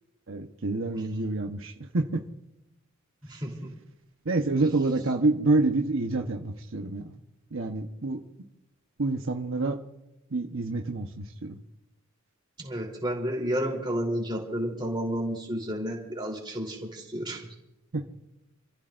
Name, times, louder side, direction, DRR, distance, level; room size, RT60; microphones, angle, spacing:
voice 1, 0.3-2.2 4.2-7.1 7.5-8.2 9.0-9.8 10.3-11.6 17.9-18.1, right 2 dB, 75° right, 3 dB, 1.1 m, -27 dB
voice 2, 12.6-17.4, equal, 25° right, 0 dB, 3.5 m, -31 dB
28.5 x 15.0 x 2.6 m, 0.90 s
head